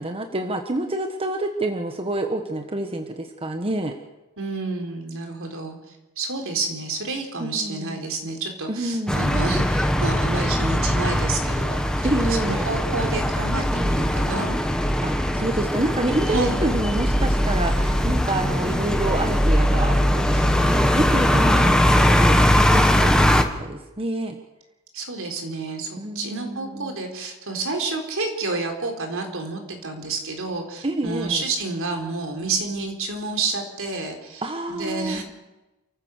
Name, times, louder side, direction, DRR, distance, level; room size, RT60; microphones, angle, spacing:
voice 1, 0.0-4.0 7.4-8.0 8.7-9.4 12.0-12.7 15.0-24.4 26.0-27.0 30.8-31.4 34.4-35.2, right 1 dB, 25° right, 5 dB, 1.4 m, -28 dB
voice 2, 4.4-5.8 6.2-11.8 12.2-14.6 16.3-16.6 24.9-34.4 34.7-35.2, right 3 dB, 65° right, 4 dB, 4.1 m, -29 dB
sound 1, 9.1-23.4, equal, 5° left, 1.5 m, -20 dB
29.0 x 15.0 x 6.7 m, 1.1 s
head